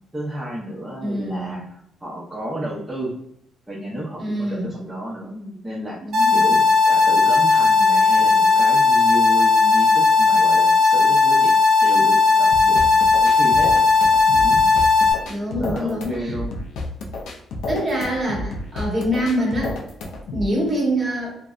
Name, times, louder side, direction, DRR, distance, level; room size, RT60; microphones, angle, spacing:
voice 1, 0.1-3.1 3.7-6.0 6.3-6.6 6.8-11.5 11.8-13.7 14.4-14.6 15.6-16.5, right 1 dB, 15° right, -7 dB, 0.6 m, -32 dB
voice 2, 1.0-1.6 4.2-4.7 6.0-6.6 15.3-16.4 17.7-19.8 20.3-21.3, equal, 30° right, -3 dB, 1.1 m, -25 dB
sound 1, 6.1-15.1, left 4 dB, 70° right, 0.5 m, -16 dB
sound 2, 12.5-20.5, left 2 dB, 85° left, 0.4 m, -31 dB
2.5 x 2.1 x 2.3 m, 0.74 s
cardioid pair, 90°, 0 cm